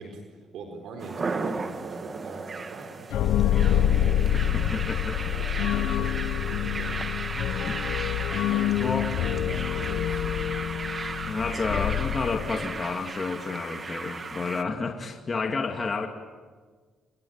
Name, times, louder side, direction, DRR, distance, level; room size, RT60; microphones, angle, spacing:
voice 1, 0.0-3.9 5.3-7.1 8.5-10.2 11.5-11.6, right 4 dB, 80° right, 4 dB, 4.3 m, -42 dB
sound 1, 1.0-14.6, right 4 dB, 35° right, 2.1 m, -35 dB
sound 2, 3.1-12.8, left 10 dB, 80° left, 1.0 m, -26 dB
voice 2, 4.3-5.2 7.6-8.5 8.8-9.1 10.8-16.1, left 4 dB, 35° left, 3 dB, 2.4 m, -31 dB
27.5 x 24.0 x 9.0 m, 1.5 s
cardioid pair, 90°, 0 cm